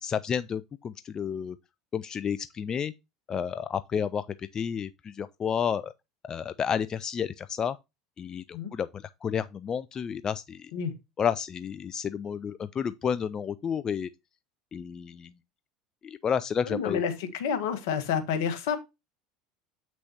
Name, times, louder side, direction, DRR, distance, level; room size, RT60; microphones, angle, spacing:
voice 1, 0.0-1.6 1.9-2.9 3.3-5.9 6.3-7.8 8.2-10.7 11.2-14.1 14.7-15.3 16.0-17.0, left 7 dB, 35° left, 0.4 m, -31 dB
voice 2, 16.6-18.8, left 7 dB, 70° left, 1.6 m, -29 dB
7.8 x 6.1 x 2.9 m
hypercardioid pair, 80°, 2 cm